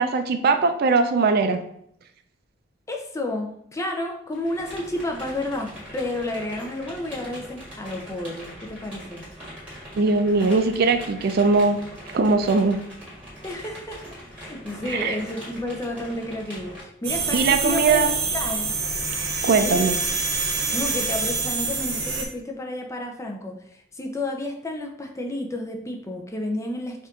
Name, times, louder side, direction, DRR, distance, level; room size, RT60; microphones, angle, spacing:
voice 1, 0.0-1.6 10.0-11.8 12.1-12.8 14.9-15.2 17.3-18.1 19.4-20.0, right 4 dB, 55° right, 7 dB, 0.4 m, -20 dB
voice 2, 2.9-9.2 13.4-14.0 14.4-18.7 19.6-19.9 20.7-23.6 23.9-27.1, left 1 dB, 15° left, 3 dB, 0.5 m, -31 dB
sound 1, 4.3-16.8, equal, 5° right, 1.5 m, -41 dB
sound 2, 17.0-22.2, right 4 dB, 80° right, 0.9 m, -26 dB
4.4 x 2.5 x 3.7 m, 0.71 s
head